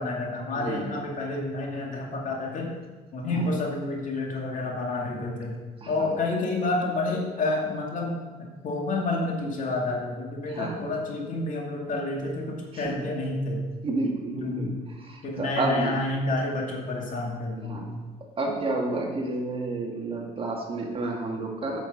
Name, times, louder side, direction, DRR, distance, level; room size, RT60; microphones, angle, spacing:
voice 1, 0.0-2.7 3.1-5.6 5.9-8.2 8.6-13.6 14.3-14.7 15.2-17.9, left 2 dB, 50° left, -1 dB, 2.4 m, -29 dB
voice 2, 0.6-0.9 3.3-3.5 5.8-6.1 10.5-10.9 12.7-13.0 13.8-15.9 17.6-18.0 18.4-21.8, right 2 dB, 35° right, 0 dB, 2.0 m, -30 dB
8.9 x 7.0 x 6.1 m, 1.3 s
cardioid pair, 110°, 17 cm